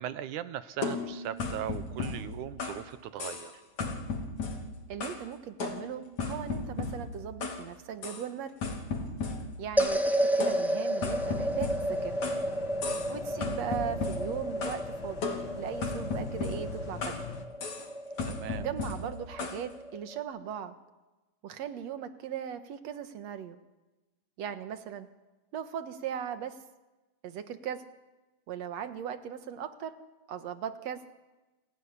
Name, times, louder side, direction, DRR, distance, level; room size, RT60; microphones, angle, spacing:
voice 1, 0.0-3.5 12.8-13.2 18.2-18.6, right 11 dB, 80° right, 13 dB, 2.5 m, -39 dB
sound 1, 0.8-2.9 3.2-3.5 3.8-5.3 5.6-7.6 8.0-8.2 8.6-10.0 10.4-12.5 12.8-13.1 13.4-14.8 15.2-17.3 17.6-17.9 18.2-19.6, left 3 dB, 70° left, 4.1 m, -36 dB
voice 2, 4.9-8.5 9.6-12.1 13.1-15.2 15.6-17.1 18.6-20.7 21.4-23.6 24.4-25.1 25.5-26.6 27.2-27.8 28.5-30.0 30.3-31.0, right 8 dB, 65° right, 9 dB, 2.4 m, -38 dB
sound 2, 9.8-20.2, right 1 dB, ahead, 0.8 m, -32 dB
sound 3, 11.1-17.5, left 6 dB, 45° left, 1.9 m, -44 dB
29.0 x 15.5 x 9.9 m, 1.1 s
omnidirectional pair, 3.5 m